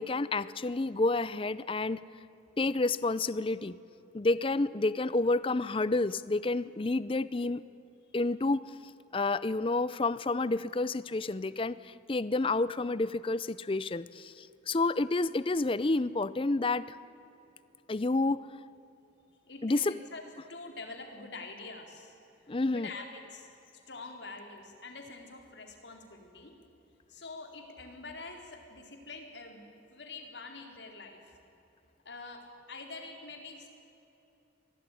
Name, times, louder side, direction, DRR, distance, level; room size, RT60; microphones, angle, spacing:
voice 1, 0.0-2.0 2.6-3.8 4.1-7.6 8.1-8.6 9.1-17.0 17.9-18.4 19.6-20.0 20.4-20.5 22.5-22.9, left 2 dB, 30° left, 17 dB, 0.5 m, -29 dB
voice 2, 19.5-20.2 20.5-22.2 22.6-26.6 27.1-31.4 32.0-33.7, left 3 dB, 65° left, 4 dB, 4.0 m, -46 dB
25.0 x 18.5 x 10.0 m, 3.0 s
head